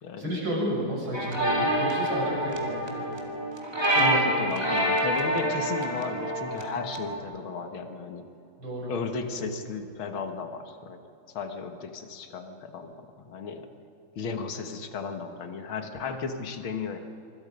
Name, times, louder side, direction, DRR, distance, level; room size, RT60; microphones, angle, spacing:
voice 1, 0.2-3.2 3.9-4.8 8.6-8.9 9.2-9.4, equal, 80° right, -4 dB, 8.1 m, -32 dB
sound 1, 1.1-7.2, right 1 dB, 15° right, 2.1 m, -27 dB
voice 2, 4.0-8.3 8.9-11.0 11.3-13.7 14.2-17.0, left 5 dB, 90° left, 6 dB, 2.3 m, -34 dB
25.5 x 25.0 x 5.4 m, 2.6 s
omnidirectional pair, 2.2 m